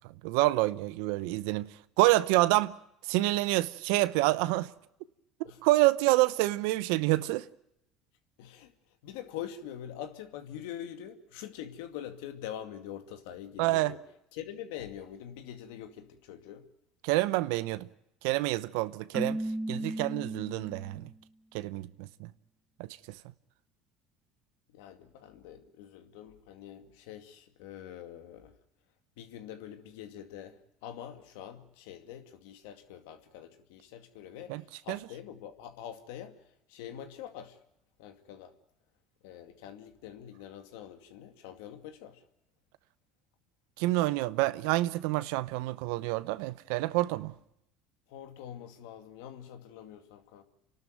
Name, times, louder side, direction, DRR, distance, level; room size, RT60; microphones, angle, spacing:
voice 1, 0.2-1.7 2.0-2.8 3.1-4.7 5.6-7.5 13.6-13.9 17.0-17.9 18.2-19.4 19.7-21.1 21.5-22.3 34.5-34.6 34.9-35.0 43.8-47.3, right 18 dB, 80° right, 0.7 m, -27 dB
voice 2, 8.4-14.0 14.3-16.7 24.7-28.6 29.2-37.6 38.0-38.5 39.2-42.2 48.1-50.4, left 10 dB, 85° left, 2.3 m, -45 dB
Keyboard (musical), 19.1-21.1, right 1 dB, 5° right, 0.8 m, -35 dB
28.5 x 12.5 x 9.2 m
supercardioid pair, 95°, 0 cm